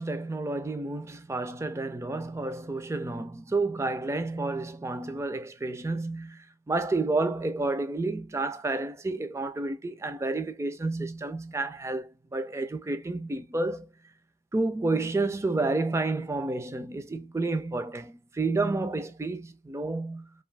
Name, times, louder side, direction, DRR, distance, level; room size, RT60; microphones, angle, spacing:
voice 1, 0.0-13.9 14.5-20.3, right 2 dB, 15° right, 0.3 m, -30 dB
2.5 x 2.4 x 3.2 m
head